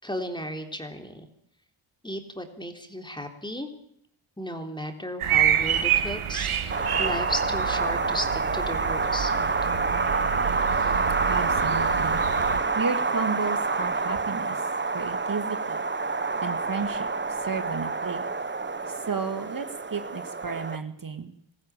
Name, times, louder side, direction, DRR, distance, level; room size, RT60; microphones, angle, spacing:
voice 1, 0.0-1.2 2.0-3.7 4.4-6.5 7.0-9.3, equal, 10° left, 5 dB, 3.6 m, -34 dB
sound 1, 5.2-12.6, right 10 dB, 80° right, 2.0 m, -28 dB
Wind, 6.7-20.8, right 4 dB, 20° right, 1.3 m, -27 dB
voice 2, 11.3-12.2 12.8-14.6 14.9-15.8 16.4-18.2 18.9-21.3, right 5 dB, 40° right, 7 dB, 1.9 m, -33 dB
20.5 x 14.5 x 8.9 m, 0.71 s
cardioid pair, 60°, 50 cm